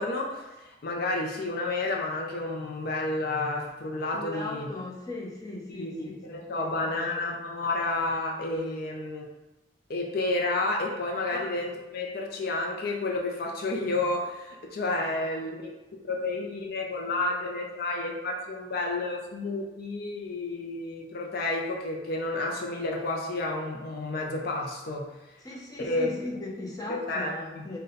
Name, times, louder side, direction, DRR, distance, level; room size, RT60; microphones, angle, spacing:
voice 1, 0.0-4.7 5.7-9.3 9.9-15.7 16.0-25.1 25.8-26.1 26.9-27.3 27.6-27.7, left 2 dB, 55° left, 0 dB, 0.5 m, -31 dB
voice 2, 4.1-6.1 6.5-7.0 11.3-11.5 25.4-27.8, left 2 dB, 20° left, -4 dB, 0.8 m, -38 dB
4.0 x 2.2 x 3.8 m, 1.1 s
head